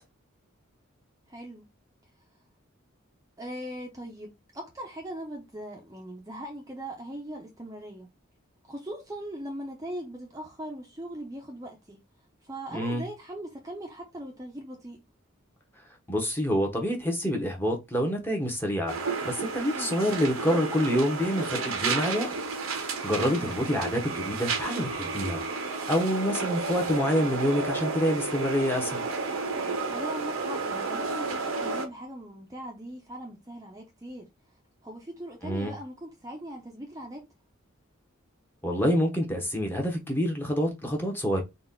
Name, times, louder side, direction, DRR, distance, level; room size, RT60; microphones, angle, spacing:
voice 1, 1.3-1.6 3.4-8.1 8.6-12.0 12.4-15.0 19.7-19.9 23.2-23.5 29.9-34.3 34.8-37.2, right 1 dB, 15° right, 0.7 m, -40 dB
voice 2, 12.7-13.0 16.1-19.0 19.2-22.3 22.6-29.1 35.4-35.7 38.6-41.4, equal, 10° left, 1.0 m, -27 dB
sound 1, 18.9-31.9, right 4 dB, 80° right, 0.9 m, -32 dB
4.1 x 2.4 x 3.7 m
head